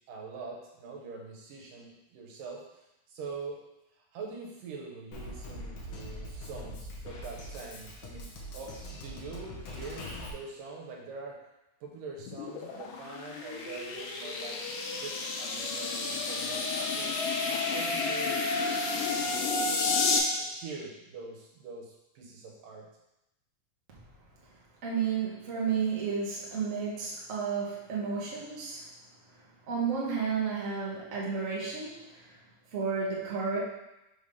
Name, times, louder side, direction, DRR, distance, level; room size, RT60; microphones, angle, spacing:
voice 1, 0.1-3.6 4.1-8.3 8.5-11.4 11.8-14.6 14.9-17.2 17.5-18.5 19.0-19.9 20.4-22.9, right 4 dB, 80° right, -1 dB, 2.8 m, -44 dB
Drum kit, 5.1-10.3, equal, 65° left, 1.6 m, -42 dB
sound 1, 12.2-20.2, left 4 dB, 80° left, 2.5 m, -31 dB
voice 2, 24.8-28.9 29.7-32.3 32.7-33.6, right 5 dB, 50° right, -5 dB, 0.9 m, -32 dB
6.2 x 3.4 x 5.4 m, 0.90 s
omnidirectional pair, 3.8 m